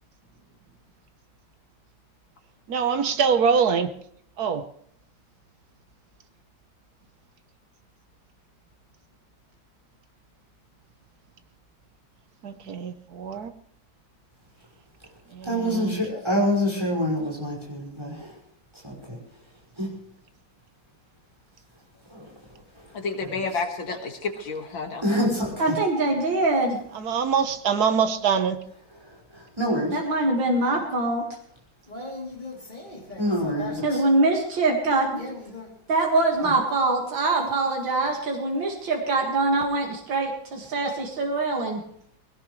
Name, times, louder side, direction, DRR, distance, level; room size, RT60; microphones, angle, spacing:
voice 1, 2.7-3.9 4.4-4.6 12.4-13.5 15.3-16.0 26.9-28.6, right 6 dB, 60° right, 1.5 m, -24 dB
voice 2, 15.4-18.4 18.8-19.2 19.8-19.9 22.1-22.3 22.8-22.9 23.2-23.6 25.0-25.8 29.1-30.0 33.2-34.0 36.4-36.5, equal, 15° right, 5.7 m, -27 dB
voice 3, 22.9-25.0, left 4 dB, 90° left, 2.7 m, -30 dB
voice 4, 25.6-26.8 29.9-31.2 33.8-35.3 35.9-41.8, right 2 dB, 85° right, 2.8 m, -23 dB
voice 5, 31.9-33.8 35.1-35.8, left 2 dB, 25° left, 3.3 m, -38 dB
20.0 x 18.0 x 3.3 m
omnidirectional pair, 2.0 m